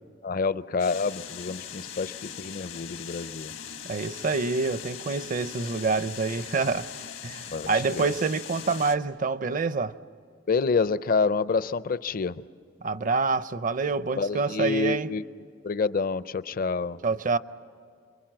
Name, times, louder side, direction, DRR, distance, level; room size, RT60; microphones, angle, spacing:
voice 1, 0.2-3.5 7.5-7.7 7.9-8.1 10.5-12.4 14.2-15.2 15.6-17.0, left 4 dB, 50° left, 0.5 m, -27 dB
sound 1, 0.8-9.0, left 9 dB, 85° left, 1.7 m, -40 dB
voice 2, 3.8-6.9 7.2-9.9 12.8-15.1 17.0-17.4, right 4 dB, 45° right, 0.6 m, -27 dB
30.0 x 22.5 x 7.6 m
head